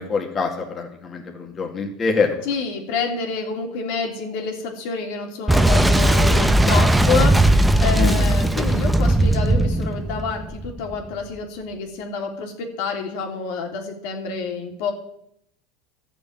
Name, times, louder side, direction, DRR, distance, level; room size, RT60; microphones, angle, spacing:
voice 1, 0.0-2.4 7.9-8.1, left 4 dB, 25° left, 1 dB, 2.3 m, -24 dB
voice 2, 2.4-7.5 7.8-14.9, left 5 dB, 70° left, 2 dB, 3.1 m, -28 dB
Boom, 5.5-11.0, right 1 dB, 5° right, 0.9 m, -18 dB
13.0 x 7.0 x 8.7 m, 0.73 s
supercardioid pair, 120°, 0 cm